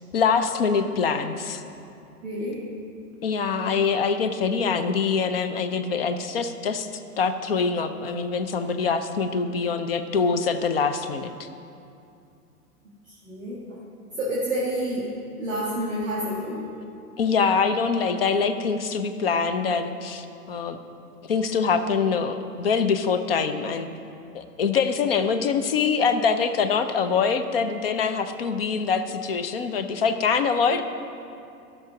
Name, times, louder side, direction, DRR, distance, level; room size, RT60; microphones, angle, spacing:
voice 1, 0.1-1.6 3.2-11.5 17.2-20.8 21.3-23.9 24.3-30.8, left 5 dB, 40° left, 9 dB, 0.6 m, -24 dB
voice 2, 2.2-2.6 13.2-13.6 14.2-15.1 15.4-16.7, equal, 5° right, -16 dB, 0.3 m, -28 dB
13.0 x 5.9 x 5.1 m, 2.6 s
figure-of-eight pair, 115°, 46 cm